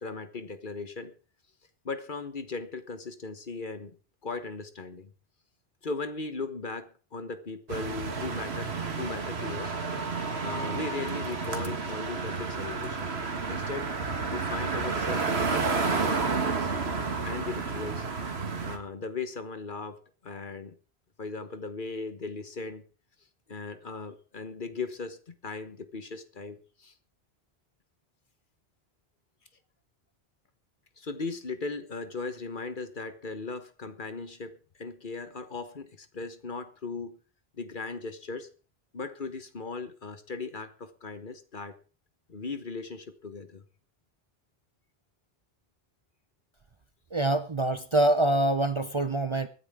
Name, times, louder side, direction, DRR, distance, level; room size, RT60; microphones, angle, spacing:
voice 1, 0.0-1.1 1.8-4.0 4.2-5.1 5.8-9.7 10.4-13.1 13.5-13.9 14.3-16.7 17.2-18.1 18.6-20.8 21.2-22.8 23.5-26.9 31.0-37.2 37.6-38.5 38.9-41.8 42.3-43.6, left 4 dB, 55° left, 10 dB, 1.4 m, -38 dB
sound 1, 7.7-18.8, right 4 dB, 90° right, 1.8 m, -31 dB
voice 2, 47.1-49.5, right 1 dB, 30° right, 10 dB, 0.7 m, -25 dB
24.0 x 9.6 x 3.6 m, 0.36 s
omnidirectional pair, 1.1 m